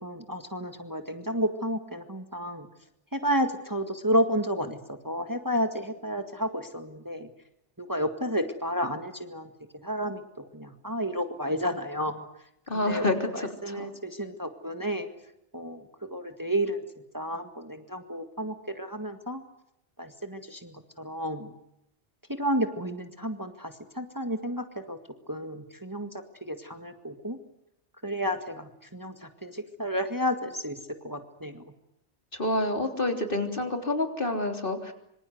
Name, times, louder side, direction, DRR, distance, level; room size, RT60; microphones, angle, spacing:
voice 1, 0.0-2.7 3.1-4.8 5.0-7.3 7.8-9.5 9.8-12.2 12.7-15.1 15.5-16.8 17.1-19.4 20.0-21.5 22.3-25.0 25.3-26.1 26.4-27.4 28.0-30.8 31.0-31.7, equal, 15° right, 6 dB, 1.9 m, -31 dB
voice 2, 12.7-13.9 32.3-34.9, left 1 dB, 50° left, 5 dB, 3.7 m, -28 dB
26.5 x 25.5 x 8.0 m, 0.78 s
omnidirectional pair, 1.2 m